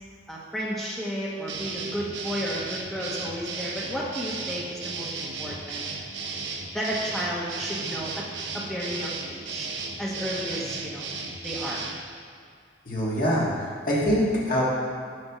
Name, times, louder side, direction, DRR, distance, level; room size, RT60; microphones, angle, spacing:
voice 1, 0.3-5.8 6.7-8.2 8.5-9.7 10.0-11.1 11.4-11.8, equal, ahead, -5 dB, 0.9 m, -32 dB
sound 1, 1.5-12.0, right 4 dB, 70° right, 0.7 m, -34 dB
voice 2, 12.8-13.5 13.9-14.6, equal, 50° left, -6 dB, 1.5 m, -23 dB
6.5 x 3.5 x 6.0 m, 2.3 s
head